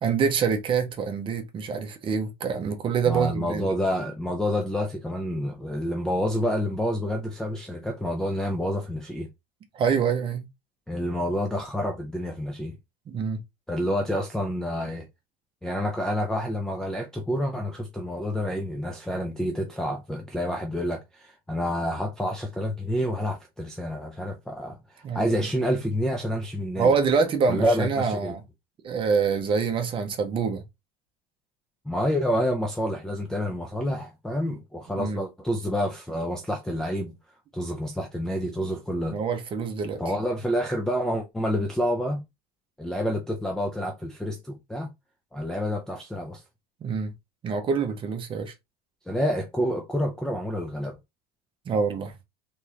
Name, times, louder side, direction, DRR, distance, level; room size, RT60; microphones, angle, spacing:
voice 1, 0.0-3.7 9.7-10.5 13.1-13.4 25.0-25.4 26.8-28.4 28.8-30.6 34.9-35.2 39.1-40.0 46.8-47.1 47.4-48.5 51.7-52.1, right 5 dB, 25° right, 0.8 m, -26 dB
voice 2, 3.1-9.3 10.9-12.8 13.7-15.1 15.6-26.9 27.5-28.3 31.9-37.2 37.5-39.2 40.0-42.2 42.8-44.9 45.3-46.4 49.1-51.0, equal, 5° left, 0.3 m, -28 dB
3.5 x 3.1 x 2.8 m
cardioid pair, 160°, 20 cm